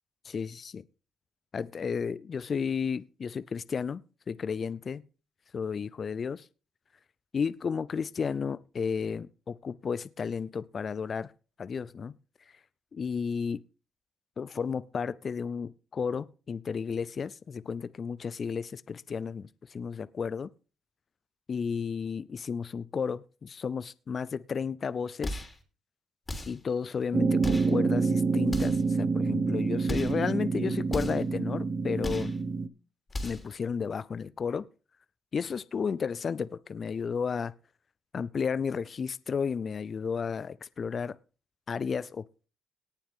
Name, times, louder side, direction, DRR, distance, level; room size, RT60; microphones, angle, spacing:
voice 1, 0.2-0.8 1.5-4.0 4.3-5.0 5.5-6.5 7.3-11.3 11.6-12.1 12.9-13.6 14.4-20.5 21.5-25.4 26.5-32.3 33.2-34.7 35.3-37.5 38.1-41.2 41.7-42.5, left 6 dB, 45° left, 0.5 m, -33 dB
sound 1, 25.2-25.6 26.3-26.7 27.4-27.8 28.5-28.9 29.8-30.2 30.9-31.3 32.0-32.4 33.1-33.5, left 1 dB, 20° left, 3.1 m, -36 dB
sound 2, 27.1-32.7, right 4 dB, 35° right, 0.9 m, -27 dB
18.0 x 7.3 x 3.6 m
cardioid pair, 90°, 0 cm